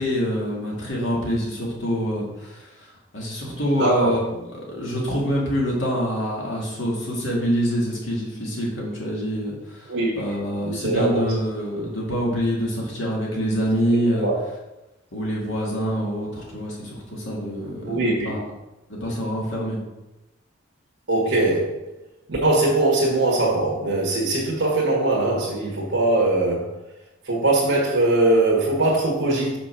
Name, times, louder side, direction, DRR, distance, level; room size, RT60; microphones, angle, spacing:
voice 1, 0.0-14.3 15.1-18.4 18.9-19.8, equal, 65° left, -3 dB, 2.3 m, -26 dB
voice 2, 3.8-4.1 9.9-10.1 10.6-11.2 14.2-14.3 17.8-18.3 21.1-21.8 22.3-26.7 27.2-29.6, right 2 dB, 60° right, -4 dB, 1.5 m, -21 dB
6.1 x 4.6 x 5.9 m, 0.99 s
head